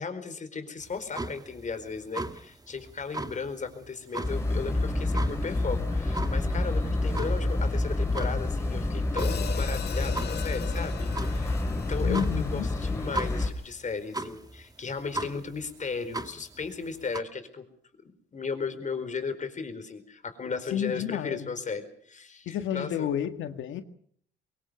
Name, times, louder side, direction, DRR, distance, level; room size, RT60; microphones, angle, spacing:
voice 1, 0.0-17.7 18.0-23.1, left 5 dB, 40° left, 4.5 m, -36 dB
sound 1, 0.8-17.2, right 2 dB, 20° right, 1.8 m, -39 dB
sound 2, 4.2-13.5, left 2 dB, 15° left, 4.3 m, -28 dB
Hi-hat, 9.2-13.5, left 7 dB, 55° left, 2.4 m, -40 dB
voice 2, 12.0-12.7 20.7-21.5 22.5-23.8, left 10 dB, 80° left, 1.8 m, -31 dB
23.5 x 23.0 x 6.4 m
cardioid pair, 90°, 20 cm